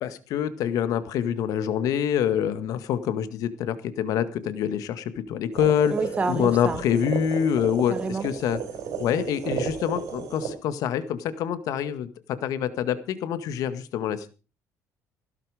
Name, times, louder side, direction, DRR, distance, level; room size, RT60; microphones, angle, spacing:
voice 1, 0.0-5.9 6.3-8.6 9.0-14.3, left 9 dB, 65° left, 1.8 m, -26 dB
sound 1, 5.5-10.5, right 7 dB, 60° right, 6.3 m, -33 dB
voice 2, 5.9-6.8 7.9-8.3, right 4 dB, 20° right, 1.7 m, -28 dB
16.0 x 12.0 x 5.0 m
cardioid pair, 140°, 6 cm